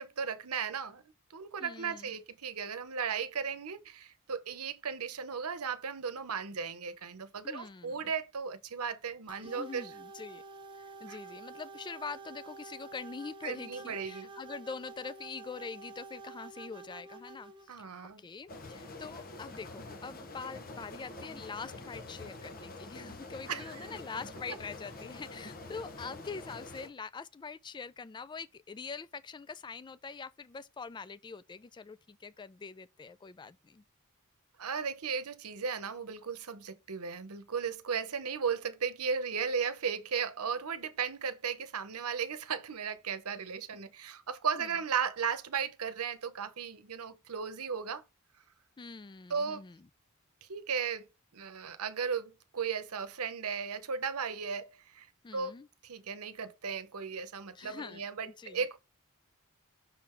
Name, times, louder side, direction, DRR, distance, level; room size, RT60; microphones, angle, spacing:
voice 1, 0.0-9.9 11.1-11.2 13.4-14.3 17.7-18.2 23.5-23.9 34.6-48.0 49.3-49.6 50.4-51.1 51.3-55.1 55.3-58.8, right 6 dB, 85° right, 0.8 m, -36 dB
voice 2, 1.6-2.1 7.4-8.1 9.4-10.4 10.7-17.9 18.2-33.8 44.6-44.7 48.8-49.9 55.2-55.7 57.6-58.0 58.4-58.6, left 5 dB, 20° left, 0.3 m, -44 dB
sound 1, 9.3-17.7, right 3 dB, 20° right, 0.8 m, -49 dB
sound 2, 18.5-26.9, left 2 dB, 45° left, 1.0 m, -46 dB
6.0 x 3.8 x 4.4 m
head